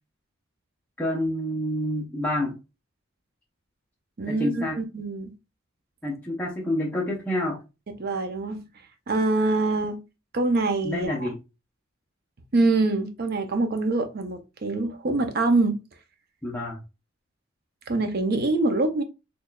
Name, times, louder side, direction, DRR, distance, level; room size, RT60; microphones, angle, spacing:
voice 1, 1.0-2.6 4.3-4.8 6.0-7.6 10.8-11.4 16.4-16.8, left 1 dB, 10° left, 0.7 m, -28 dB
voice 2, 4.2-5.3 8.0-8.6 9.1-10.0 10.3-11.3 12.5-15.8 17.9-19.0, right 2 dB, 50° right, 0.5 m, -24 dB
4.1 x 3.1 x 2.3 m
head